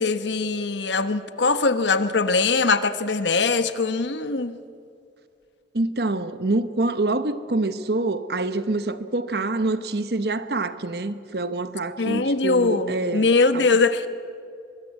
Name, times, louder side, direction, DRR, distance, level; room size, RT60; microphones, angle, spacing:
voice 1, 0.0-4.6 12.0-14.1, left 3 dB, 85° left, 1.1 m, -22 dB
voice 2, 5.7-13.3 13.5-13.6, right 2 dB, 65° right, 1.0 m, -26 dB
23.0 x 22.5 x 8.3 m
head